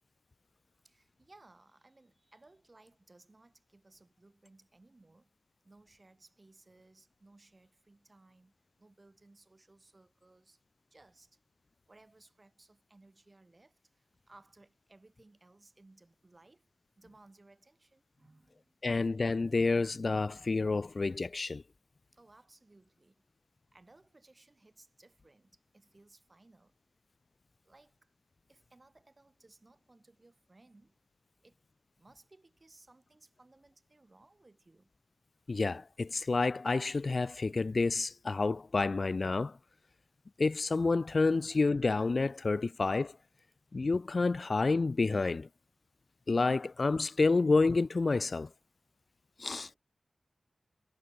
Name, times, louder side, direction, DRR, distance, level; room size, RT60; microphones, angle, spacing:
voice 1, 0.8-5.3 5.6-10.6 10.9-11.4 11.9-16.7 17.0-18.8 22.1-23.3 23.7-26.8 27.6-28.1 28.5-31.0 31.4-31.6 32.0-34.9 49.7-49.8, right 2 dB, 35° right, 6.2 m, -62 dB
voice 2, 18.8-21.6 35.5-39.6 40.4-43.1 43.7-45.5 46.3-48.5 49.4-49.7, left 3 dB, 50° left, 0.4 m, -29 dB
wide cardioid pair, 85°, 0 cm